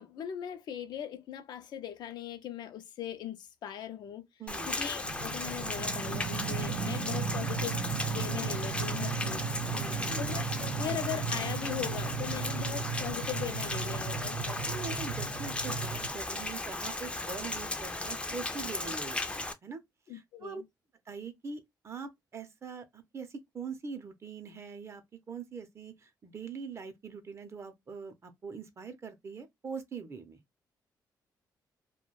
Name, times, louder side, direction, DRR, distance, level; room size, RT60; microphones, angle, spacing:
voice 1, 0.0-4.2 4.7-7.8 8.1-9.4 10.2-14.6 20.1-20.6, left 10 dB, 75° left, 0.4 m, -39 dB
voice 2, 4.4-4.7 9.2-9.3 9.7-10.3 14.6-19.8 20.1-20.6 21.1-30.4, right 5 dB, 35° right, 0.6 m, -43 dB
Rain, 4.5-19.5, left 2 dB, 15° left, 0.4 m, -36 dB
sound 1, 5.0-16.1, right 6 dB, 85° right, 0.5 m, -36 dB
2.3 x 2.2 x 3.0 m
cardioid pair, 110°, 7 cm